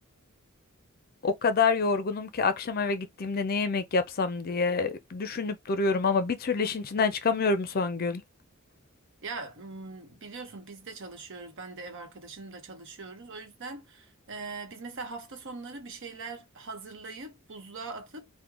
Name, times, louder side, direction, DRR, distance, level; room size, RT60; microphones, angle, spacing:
voice 1, 1.2-8.2, left 4 dB, 45° left, 0.5 m, -27 dB
voice 2, 9.2-18.3, right 3 dB, 60° right, 1.0 m, -41 dB
3.2 x 2.2 x 3.7 m
head